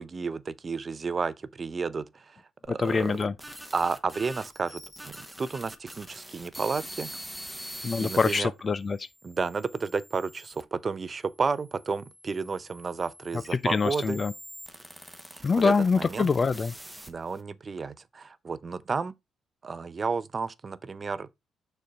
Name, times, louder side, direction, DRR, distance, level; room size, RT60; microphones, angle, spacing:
voice 1, 0.0-2.4 2.7-3.2 3.7-7.1 8.0-8.5 9.2-14.2 15.3-16.3 17.1-19.1 19.6-21.3, right 4 dB, 35° right, 0.6 m, -32 dB
sound 1, 2.6-8.4 9.1-10.6 11.4-17.4, equal, 5° right, 1.2 m, -44 dB
voice 2, 2.7-3.3 7.8-9.1 13.5-14.3 15.4-16.7, left 4 dB, 35° left, 0.4 m, -25 dB
6.5 x 4.3 x 4.5 m
cardioid pair, 90°, 0 cm